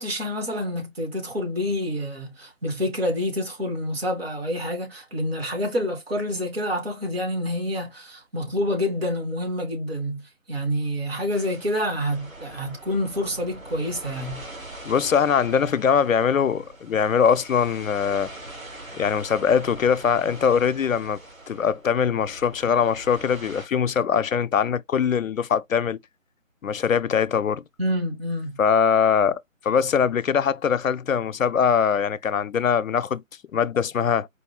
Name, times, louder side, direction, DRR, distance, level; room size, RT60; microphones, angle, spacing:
voice 1, 0.0-14.5 27.8-28.6, left 1 dB, 45° right, 1.6 m, -28 dB
sound 1, 11.3-23.7, right 2 dB, 85° right, 2.7 m, -43 dB
voice 2, 14.9-18.3 18.9-21.2 21.5-26.0 26.6-27.6 28.6-33.2 33.5-34.3, left 7 dB, 80° left, 0.5 m, -22 dB
4.4 x 2.7 x 2.9 m
figure-of-eight pair, 155°, 40 cm